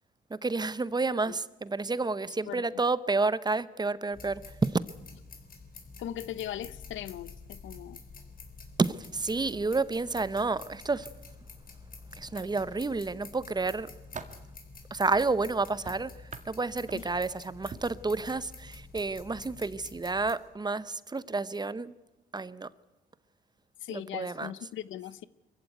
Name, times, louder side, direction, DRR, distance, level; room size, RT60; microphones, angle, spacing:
voice 1, 0.3-4.8 8.8-11.1 12.2-13.9 14.9-16.1 16.4-21.9 22.3-22.7 23.9-24.5, right 3 dB, 20° right, 0.8 m, -30 dB
sound 1, 4.1-20.3, left 4 dB, 45° left, 4.1 m, -49 dB
voice 2, 6.0-8.0 16.9-17.1 23.8-25.3, left 11 dB, 75° left, 0.8 m, -39 dB
sound 2, 12.3-13.1 13.6-14.5 15.8-17.3 17.7-18.0 18.9-19.1 19.4-19.6, right 5 dB, 35° right, 1.9 m, -46 dB
23.5 x 15.0 x 9.4 m
cardioid pair, 90°, 20 cm